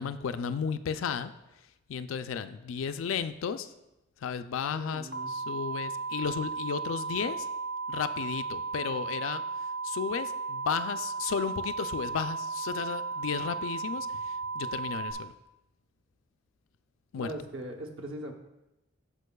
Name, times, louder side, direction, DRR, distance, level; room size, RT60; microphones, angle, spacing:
voice 1, 0.0-1.3 1.9-3.7 4.2-7.5 7.9-9.4 9.8-15.3 17.1-17.3, left 6 dB, 80° left, 11 dB, 0.4 m, -34 dB
voice 2, 4.6-5.3 17.1-18.3, right 1 dB, 70° right, 3 dB, 1.0 m, -40 dB
sound 1, 5.1-15.1, right 4 dB, 45° right, 0.6 m, -35 dB
13.0 x 5.1 x 2.3 m, 0.95 s
head